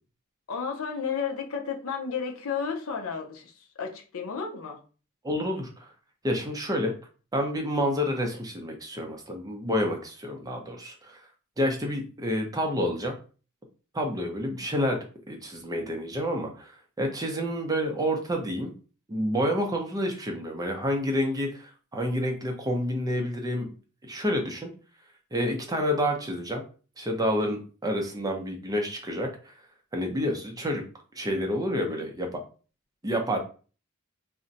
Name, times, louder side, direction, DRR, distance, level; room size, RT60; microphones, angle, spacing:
voice 1, 0.5-3.5 3.8-4.8, left 6 dB, 75° left, 0.6 m, -32 dB
voice 2, 5.2-5.9 6.2-6.9 7.3-11.2 11.6-13.1 13.9-15.0 15.3-18.7 19.1-23.7 24.0-24.7 25.3-26.6 27.0-29.5 29.9-30.8 31.1-32.4 33.0-33.4, equal, 15° right, 0.6 m, -29 dB
2.5 x 2.1 x 3.9 m
head